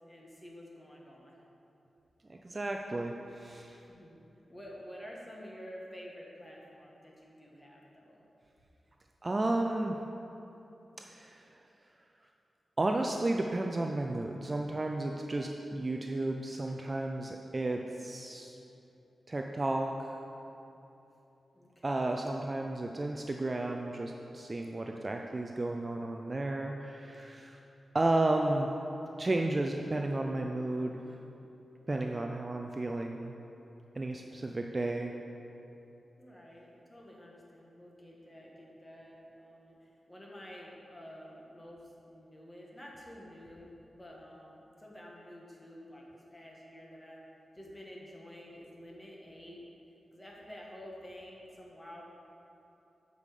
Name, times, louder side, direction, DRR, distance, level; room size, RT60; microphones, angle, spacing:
voice 1, 0.0-1.4 3.9-8.2 21.5-22.2 36.2-47.2 47.5-49.6 50.1-52.0, equal, 15° left, -3 dB, 1.4 m, -50 dB
voice 2, 2.3-3.8 9.2-10.0 11.0-11.6 12.8-18.6 19.3-20.2 21.8-27.6 27.9-28.7 29.2-31.0 31.9-33.3 34.0-35.1, right 2 dB, 25° right, 2 dB, 0.4 m, -33 dB
8.3 x 5.3 x 6.6 m, 3.0 s
wide cardioid pair, 150°, 0 cm